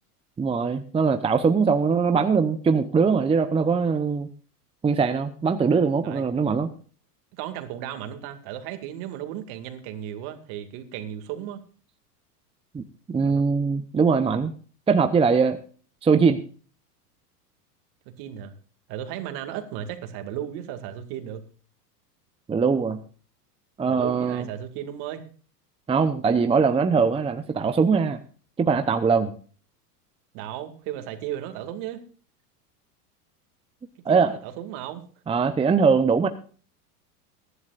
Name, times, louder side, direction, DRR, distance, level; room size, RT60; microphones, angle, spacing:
voice 1, 0.4-4.3 4.8-6.7 12.7-12.8 13.1-14.5 14.9-15.6 16.0-16.4 22.5-23.0 23.8-24.4 25.9-28.2 28.6-29.3 34.1-34.3 35.3-36.3, right 5 dB, 10° right, 9 dB, 0.7 m, -21 dB
voice 2, 7.4-11.6 13.2-13.5 18.1-18.5 18.9-21.4 23.8-25.3 30.3-32.0 34.1-35.0, right 11 dB, 50° right, 7 dB, 2.3 m, -35 dB
22.0 x 11.0 x 2.5 m, 0.40 s
hypercardioid pair, 105°, 47 cm